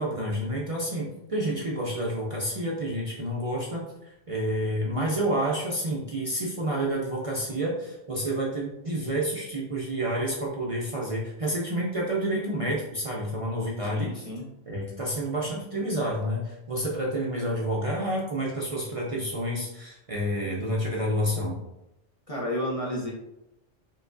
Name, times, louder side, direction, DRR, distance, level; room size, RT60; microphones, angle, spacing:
voice 1, 0.0-14.3 14.7-21.6, right 1 dB, 40° right, -4 dB, 0.6 m, -29 dB
voice 2, 13.9-14.5 22.3-23.1, equal, 35° left, -3 dB, 0.9 m, -31 dB
4.8 x 3.1 x 2.6 m, 0.87 s
omnidirectional pair, 1.1 m